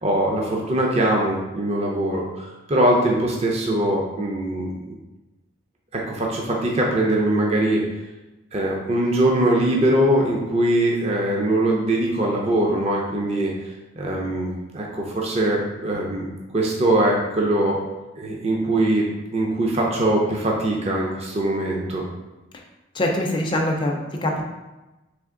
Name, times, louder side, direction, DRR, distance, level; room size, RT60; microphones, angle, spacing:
voice 1, 0.0-5.0 5.9-7.9 8.5-13.5 14.0-16.3 16.5-17.8 18.2-22.0, right 1 dB, 30° right, -2 dB, 0.5 m, -22 dB
voice 2, 22.9-24.4, left 1 dB, 25° left, 0 dB, 0.4 m, -23 dB
3.4 x 3.3 x 3.6 m, 1.1 s
head